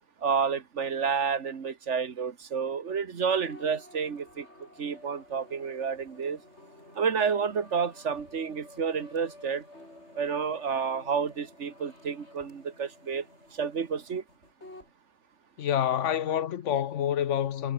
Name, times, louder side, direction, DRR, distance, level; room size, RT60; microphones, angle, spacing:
voice 1, 0.2-4.5 4.8-6.4 6.9-9.6 10.2-13.2 13.5-14.2, right 6 dB, 75° right, 1.8 m, -30 dB
sound 1, 3.3-14.9, left 1 dB, 65° left, 8.1 m, -52 dB
voice 2, 15.6-17.7, left 10 dB, 85° left, 1.2 m, -27 dB
omnidirectional pair, 1.2 m